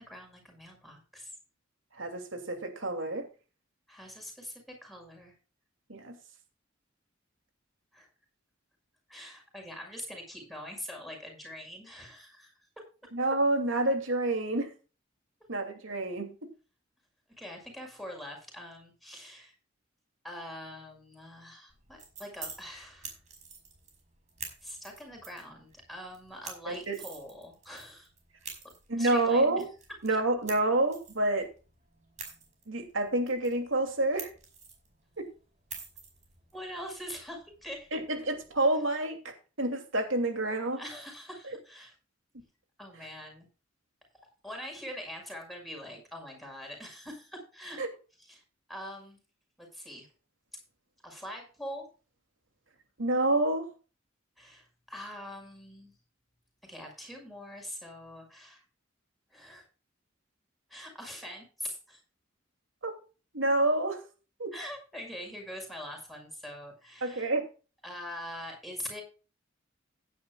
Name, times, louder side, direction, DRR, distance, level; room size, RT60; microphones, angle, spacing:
voice 1, 0.0-1.3 3.9-5.3 7.9-8.1 9.1-12.5 17.4-19.5 20.2-23.2 24.6-28.1 29.0-29.5 30.1-30.2 36.5-37.9 40.7-41.9 42.8-43.5 44.4-47.8 48.2-48.4 48.7-49.2 49.6-50.1 51.0-51.9 54.4-55.9 56.7-58.6 59.3-59.6 60.7-62.0 64.5-67.3 67.8-69.0, equal, ahead, 1 dB, 5.9 m, -43 dB
voice 2, 2.0-3.3 5.9-6.1 13.1-14.7 15.5-16.5 26.7-27.0 28.9-29.6 30.0-31.5 32.7-34.3 35.2-35.3 37.9-40.8 47.8-47.9 53.0-53.7 62.8-62.9 63.3-64.0 64.4-64.5 67.0-67.4, right 2 dB, 85° right, 4 dB, 2.8 m, -28 dB
sound 1, 21.7-38.6, right 5 dB, 40° right, 5.4 m, -49 dB
16.5 x 10.5 x 2.4 m, 0.35 s
head